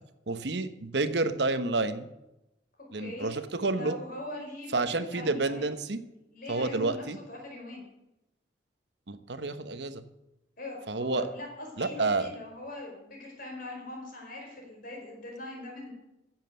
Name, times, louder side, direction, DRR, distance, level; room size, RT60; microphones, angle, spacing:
voice 1, 0.3-2.1 2.9-4.0 4.7-6.0 6.5-7.2 9.1-10.0 10.9-11.3 11.8-12.3, right 3 dB, 65° right, 11 dB, 1.0 m, -29 dB
voice 2, 3.0-3.4 3.6-5.7 6.3-7.8 10.6-15.9, left 2 dB, 50° left, 0 dB, 4.9 m, -41 dB
15.0 x 7.6 x 6.9 m, 0.91 s
head